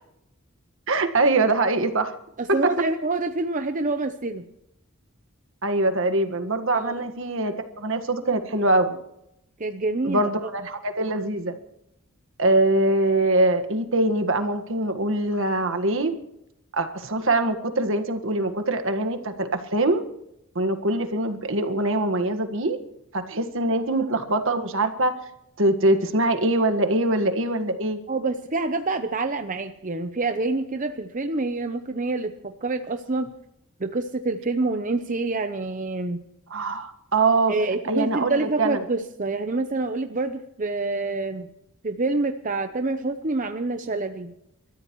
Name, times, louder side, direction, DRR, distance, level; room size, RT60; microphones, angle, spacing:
voice 1, 0.9-2.1 5.6-9.0 10.0-11.5 12.4-16.1 16.7-20.0 20.5-22.8 23.1-25.1 25.6-28.0 36.5-37.5 37.9-38.8, right 2 dB, 65° right, 7 dB, 1.7 m, -23 dB
voice 2, 2.4-4.4 6.7-7.0 9.6-10.3 28.1-33.3 33.8-36.2 37.5-41.5 41.8-44.3, right 3 dB, 35° right, 7 dB, 0.8 m, -27 dB
29.5 x 14.0 x 3.1 m, 0.82 s
head